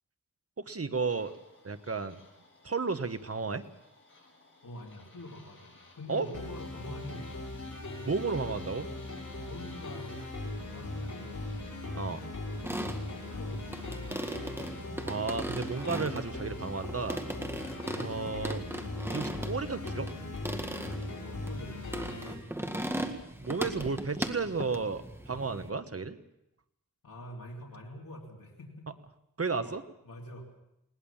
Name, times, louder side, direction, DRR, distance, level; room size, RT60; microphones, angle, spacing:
voice 1, 0.6-1.3 1.6-2.2 2.6-3.6 6.1-6.3 8.0-8.9 11.9-12.2 15.0-17.2 17.9-18.6 19.1-20.1 23.4-26.2 29.4-29.8, right 4 dB, 45° right, 10 dB, 1.3 m, -33 dB
sound 1, 0.9-15.0, left 2 dB, 35° left, 7.3 m, -58 dB
voice 2, 4.6-7.4 9.4-11.6 12.4-14.1 17.3-17.8 21.2-22.1 27.0-28.9 29.5-30.4, left 1 dB, 80° left, -1 dB, 3.0 m, -46 dB
sound 2, 6.3-22.3, left 2 dB, 60° left, 6.3 m, -39 dB
sound 3, 12.5-25.7, right 1 dB, 5° right, 1.8 m, -38 dB
20.5 x 18.5 x 7.3 m, 0.83 s
wide cardioid pair, 80°, 33 cm